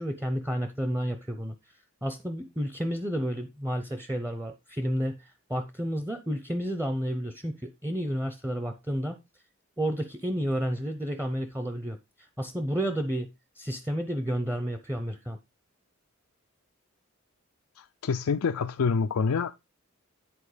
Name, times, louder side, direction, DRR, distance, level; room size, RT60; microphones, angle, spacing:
voice 1, 0.0-1.5 2.0-9.2 9.8-13.3 13.6-15.4, equal, 10° right, 0.7 m, -31 dB
voice 2, 17.8-19.6, left 5 dB, 85° left, 0.4 m, -27 dB
10.5 x 4.3 x 5.0 m
head